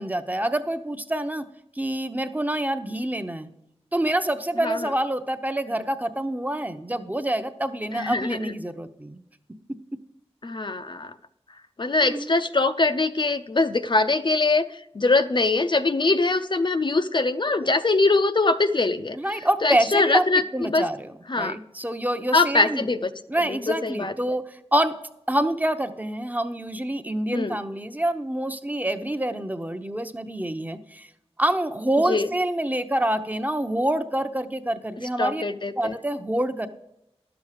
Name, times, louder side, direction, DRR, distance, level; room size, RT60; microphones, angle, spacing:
voice 1, 0.0-1.4 1.8-3.5 3.9-9.2 12.0-12.3 17.5-17.6 19.1-20.2 20.5-22.9 23.3-24.9 25.3-31.1 31.4-35.4 35.7-36.7, right 1 dB, 15° right, 9 dB, 0.7 m, -26 dB
voice 2, 7.9-8.5 10.4-11.1 11.8-14.7 14.9-19.2 19.6-20.8 21.3-21.6 22.3-23.1 23.5-24.1 27.3-27.5 32.1-32.3 35.2-35.9, left 3 dB, 45° left, 10 dB, 0.5 m, -22 dB
11.5 x 7.1 x 4.9 m, 0.85 s
wide cardioid pair, 65°, 11 cm